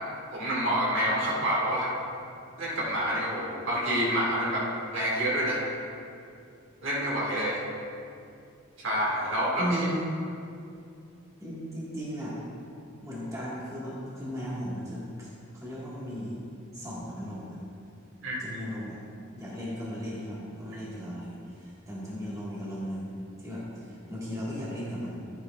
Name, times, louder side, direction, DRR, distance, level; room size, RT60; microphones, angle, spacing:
voice 1, 0.3-1.9 2.6-5.6 6.8-7.6 8.8-9.7 18.2-18.4, equal, 65° right, -5 dB, 2.2 m, -28 dB
voice 2, 9.6-10.0 11.4-12.4 13.0-15.3 15.5-16.4 16.7-17.6 18.4-19.0 19.3-23.1 23.4-25.2, equal, 15° right, -8 dB, 1.9 m, -36 dB
12.5 x 8.8 x 2.5 m, 2.5 s
head